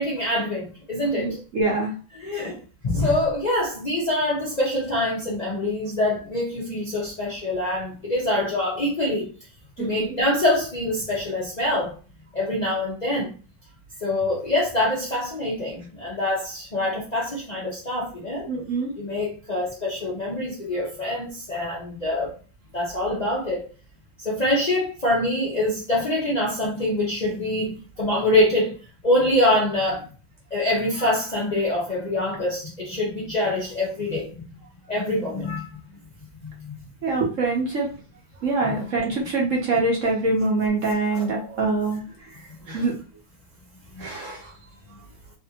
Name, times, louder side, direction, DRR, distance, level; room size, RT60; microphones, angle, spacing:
voice 1, 0.0-1.4 2.1-9.3 9.8-12.0 12.3-13.3 14.0-18.5 18.9-22.3 22.7-23.7 24.2-28.7 29.0-30.1 30.5-34.4 34.9-35.8 36.4-36.8 38.6-38.8 41.1-41.3 42.5-42.8 43.9-44.1, left 1 dB, 75° left, -6 dB, 0.3 m, -25 dB
voice 2, 1.2-1.9 9.8-10.1 18.5-18.9 37.0-37.9 38.4-42.0 42.7-42.9 44.0-44.5, right 3 dB, 60° right, -2 dB, 0.8 m, -24 dB
3.4 x 2.5 x 2.8 m, 0.36 s
omnidirectional pair, 2.2 m